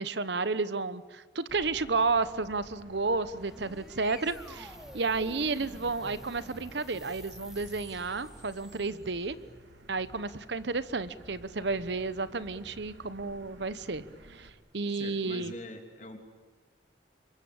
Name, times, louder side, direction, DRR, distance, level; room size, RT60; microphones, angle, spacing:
voice 1, 0.0-9.4 9.9-14.0 14.3-15.5, right 3 dB, 70° right, 15 dB, 1.0 m, -32 dB
Motor vehicle (road), 1.5-14.5, right 1 dB, 90° right, 3.3 m, -53 dB
sound 1, 3.0-9.4, equal, 5° right, 2.9 m, -49 dB
voice 2, 14.8-16.2, left 2 dB, 40° left, 5 dB, 3.2 m, -44 dB
26.5 x 22.5 x 8.8 m, 1.4 s
head